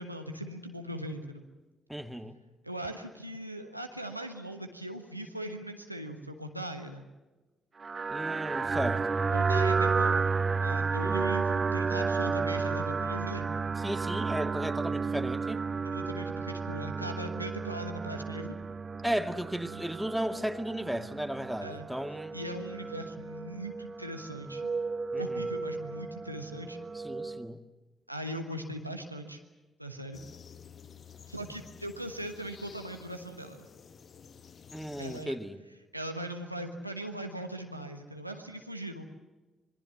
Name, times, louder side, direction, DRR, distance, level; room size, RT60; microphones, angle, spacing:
voice 1, 0.0-1.4 2.6-7.1 9.3-10.2 10.6-13.6 15.8-18.6 21.6-21.9 22.3-24.7 25.2-26.8 28.1-29.4 29.8-30.2 31.3-33.7 35.0-35.3 35.9-39.0, right 1 dB, 90° right, 5 dB, 1.2 m, -40 dB
voice 2, 1.9-2.3 8.1-9.2 13.8-15.6 19.0-22.3 25.1-25.5 27.0-27.6 34.7-35.6, equal, 5° right, 7 dB, 1.9 m, -35 dB
sound 1, 7.8-27.5, right 4 dB, 35° right, 0.9 m, -32 dB
sound 2, 30.1-35.2, left 7 dB, 45° left, 1.1 m, -52 dB
26.5 x 22.0 x 7.3 m, 1.2 s
figure-of-eight pair, 40°, 0 cm